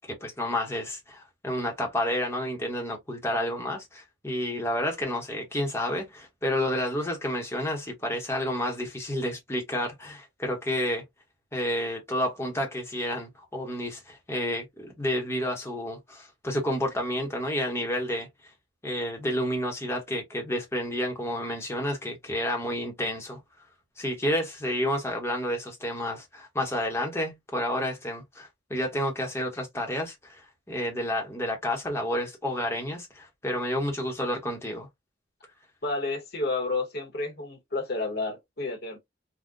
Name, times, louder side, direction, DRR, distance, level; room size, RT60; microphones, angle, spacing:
voice 1, 0.1-11.0 11.5-18.3 18.8-23.4 24.0-34.9, left 1 dB, 15° left, 0.8 m, -30 dB
voice 2, 35.8-39.0, left 3 dB, 50° left, 1.0 m, -30 dB
3.6 x 2.1 x 2.5 m
head